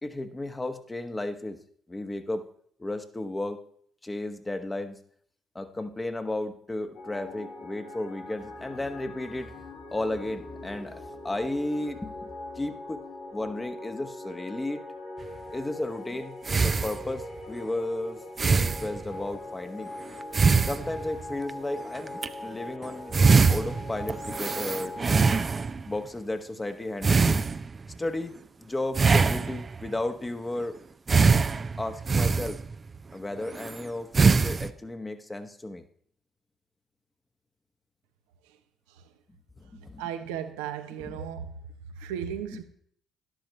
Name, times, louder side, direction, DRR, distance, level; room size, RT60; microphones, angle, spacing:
voice 1, 0.0-1.6 1.9-2.4 2.8-3.6 4.0-5.0 5.5-13.0 13.3-14.8 15.5-16.3 16.6-18.2 18.5-20.2 20.6-23.2 23.5-25.4 25.9-27.4 28.0-30.8 31.8-32.6 33.1-35.8 39.7-40.0 41.0-41.1, left 2 dB, 20° left, 1.3 m, -34 dB
sound 1, 7.0-25.4, left 2 dB, 65° left, 2.0 m, -41 dB
sound 2, 15.4-15.5 16.4-17.4 18.4-19.2 20.2-21.5 22.1-22.3 22.8-22.9 23.1-26.0 27.0-27.9 28.9-29.9 31.1-32.9 33.5-33.8 34.1-34.7, right 4 dB, 40° right, 0.5 m, -23 dB
voice 2, 40.0-41.5 42.0-42.6, right 9 dB, 85° right, 0.9 m, -35 dB
12.0 x 11.5 x 3.2 m
hypercardioid pair, 50°, 0 cm